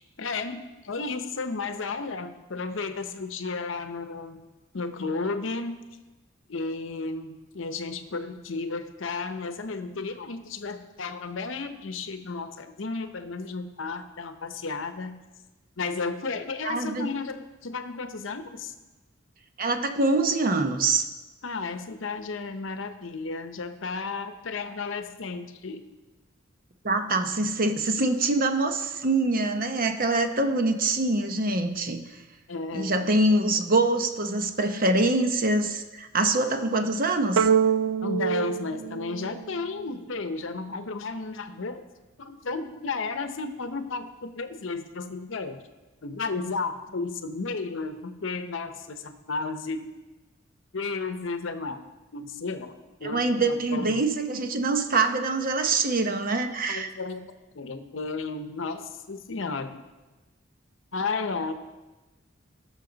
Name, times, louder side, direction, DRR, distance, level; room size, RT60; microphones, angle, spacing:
voice 1, 0.0-4.4 4.7-5.8 6.5-15.2 15.8-18.7 21.4-25.8 32.5-33.1 38.0-41.9 42.2-45.6 46.0-49.9 50.7-51.8 52.1-54.0 56.7-59.8 60.9-61.5, left 4 dB, 70° left, 9 dB, 0.8 m, -33 dB
voice 2, 16.6-17.1 19.6-21.1 26.8-32.0 32.7-37.5 53.0-56.9, right 2 dB, 45° right, 7 dB, 0.8 m, -24 dB
sound 1, 37.4-39.9, right 7 dB, 85° right, 0.4 m, -25 dB
18.0 x 6.4 x 3.9 m, 1.2 s
head